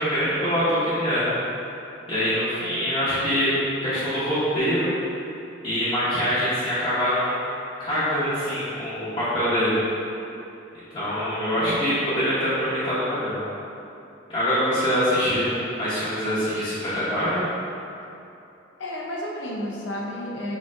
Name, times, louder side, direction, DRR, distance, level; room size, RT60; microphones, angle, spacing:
voice 1, 0.0-1.3 2.1-3.6 3.8-4.9 5.6-7.4 7.8-9.8 10.9-13.4 14.3-17.4, equal, 30° left, -14 dB, 0.9 m, -24 dB
voice 2, 18.8-20.6, left 1 dB, 75° left, -3 dB, 0.6 m, -32 dB
6.5 x 2.8 x 2.4 m, 2.8 s
head